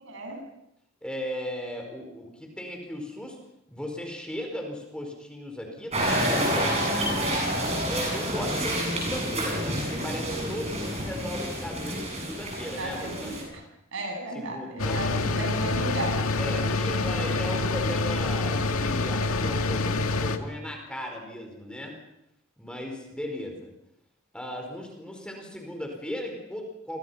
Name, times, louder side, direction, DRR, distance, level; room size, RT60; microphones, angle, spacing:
voice 1, 0.1-0.4 12.8-13.6 13.9-16.2, right 1 dB, 60° right, 3 dB, 8.0 m, -34 dB
voice 2, 1.0-3.4 3.7-6.9 7.9-13.6 14.3-15.3 16.4-22.0 22.6-23.7 24.3-27.0, left 1 dB, 5° left, 2 dB, 4.8 m, -36 dB
sound 1, 5.9-13.4, equal, 30° right, 7.7 m, -28 dB
sound 2, 14.8-20.4, left 3 dB, 85° left, 2.0 m, -26 dB
29.5 x 24.0 x 5.8 m, 0.79 s
head